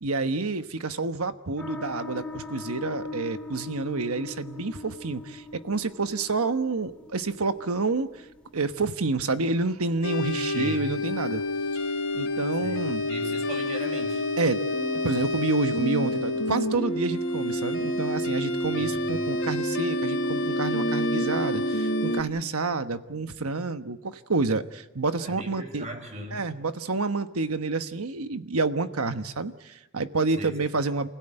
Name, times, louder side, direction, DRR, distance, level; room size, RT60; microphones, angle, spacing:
voice 1, 0.0-8.3 8.5-11.4 11.7-11.8 12.1-13.0 14.4-14.6 15.0-25.9 26.3-31.1, right 3 dB, 90° right, 10 dB, 1.2 m, -28 dB
sound 1, 1.6-12.7, left 3 dB, 5° left, 2.1 m, -42 dB
sound 2, 10.0-22.2, left 1 dB, 60° left, 3.0 m, -28 dB
voice 2, 10.5-10.9 12.6-14.2 18.7-19.3 25.2-26.4 30.3-30.6, equal, 30° right, 5 dB, 4.7 m, -38 dB
28.0 x 16.5 x 9.0 m, 1.1 s
head